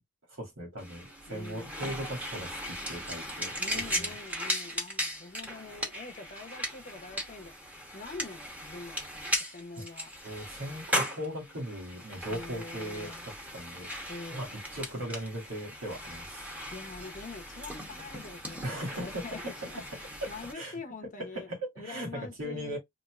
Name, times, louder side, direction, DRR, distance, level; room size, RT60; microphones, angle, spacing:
voice 1, 0.3-3.5 3.9-4.1 10.2-13.9 14.3-16.4 18.6-19.2 20.2-20.7 21.3-22.8, equal, 85° right, 2.2 m, -38 dB
sound 1, 0.8-20.5, equal, 10° right, 1.0 m, -38 dB
voice 2, 1.3-2.1 3.6-10.1 12.3-13.2 14.1-14.6 16.7-21.5 21.8-22.8, left 3 dB, 40° left, 0.8 m, -45 dB
4.2 x 2.7 x 2.4 m
head